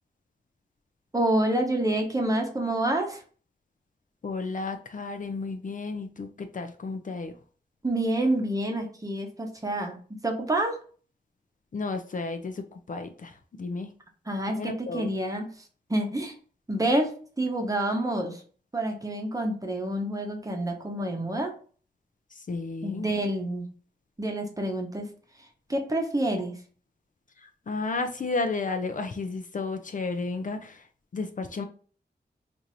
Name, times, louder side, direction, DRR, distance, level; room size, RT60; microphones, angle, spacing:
voice 1, 1.1-3.2 7.8-10.0 10.2-10.8 14.3-15.5 15.9-16.3 16.7-17.1 17.4-18.4 18.7-21.5 22.8-23.7 24.2-25.1 25.7-26.6, right 1 dB, 20° right, 2 dB, 0.9 m, -27 dB
voice 2, 4.2-7.3 11.7-13.9 14.5-15.1 22.5-23.1 27.4-30.8 31.1-31.6, left 3 dB, 50° left, 6 dB, 0.5 m, -32 dB
4.6 x 2.6 x 2.7 m, 0.42 s
wide cardioid pair, 105°, 17 cm